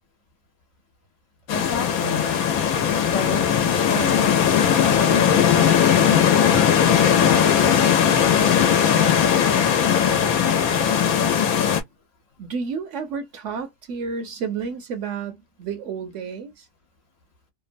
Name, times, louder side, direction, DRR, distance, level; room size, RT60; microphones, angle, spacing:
sound 1, 1.5-11.8, left 8 dB, 85° left, 1.1 m, -18 dB
voice 1, 1.5-2.2 3.1-4.4 4.9-8.1, left 4 dB, 50° left, 1.2 m, -32 dB
voice 2, 12.4-16.7, right 5 dB, 65° right, 0.9 m, -31 dB
2.9 x 2.1 x 2.5 m
omnidirectional pair, 1.5 m